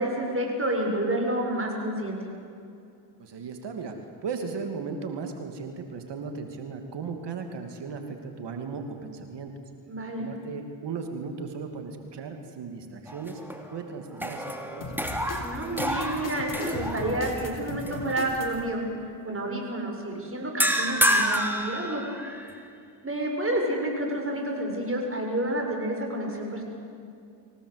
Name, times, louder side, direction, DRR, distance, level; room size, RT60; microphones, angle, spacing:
voice 1, 0.0-2.2 9.9-10.3 15.4-18.8 19.2-22.0 23.0-26.6, right 1 dB, 25° right, 1 dB, 7.1 m, -29 dB
voice 2, 3.2-4.0 4.2-9.5 10.2-13.4 13.7-14.9, right 5 dB, 55° right, 5 dB, 2.7 m, -36 dB
sound 1, 13.1-13.8 14.1-17.4 17.9-18.1 20.6-22.5, equal, 5° right, 3.2 m, -28 dB
sound 2, 14.8-18.6, left 3 dB, 40° left, 4.1 m, -38 dB
25.5 x 17.5 x 8.3 m, 2.5 s
cardioid pair, 80°, 49 cm